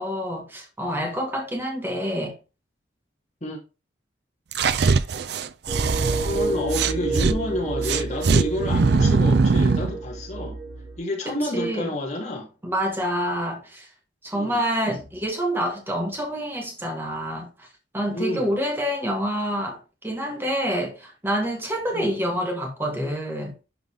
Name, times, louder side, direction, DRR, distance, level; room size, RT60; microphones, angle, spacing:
voice 1, 0.0-2.4 11.3-11.9 12.6-13.9 14.2-17.7 17.9-23.5, equal, 10° right, 1.9 m, -27 dB
sound 1, 4.5-7.4 7.8-9.9, right 4 dB, 60° right, 0.5 m, -21 dB
sound 2, 5.7-11.0, right 3 dB, 40° right, 2.3 m, -30 dB
voice 2, 6.2-10.6 11.0-12.5 14.3-14.6 18.1-18.5 21.9-22.2, left 1 dB, 40° left, 2.8 m, -29 dB
11.0 x 4.0 x 3.6 m
head